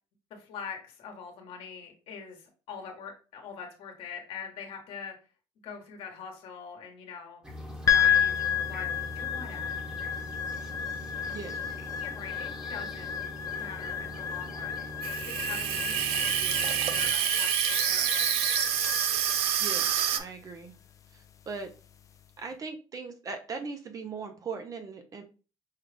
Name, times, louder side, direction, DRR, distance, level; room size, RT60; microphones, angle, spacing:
voice 1, 0.3-5.1 5.6-7.4 7.7-8.4 8.7-10.0 11.8-13.2 13.6-14.9 15.3-18.5, left 6 dB, 65° left, 3 dB, 1.3 m, -44 dB
sound 1, 7.4-17.1, equal, 10° right, 1.2 m, -42 dB
sound 2, 7.9-22.2, left 9 dB, 30° left, 0.4 m, -32 dB
voice 2, 11.3-11.8 19.6-20.7 21.1-21.7 22.4-25.2, right 4 dB, 35° right, 6 dB, 0.6 m, -39 dB
Water tap faucet / Sink (filling or washing), 15.0-20.2, right 10 dB, 75° right, 0.5 m, -27 dB
5.5 x 2.4 x 3.3 m, 0.35 s
cardioid pair, 115°, 10 cm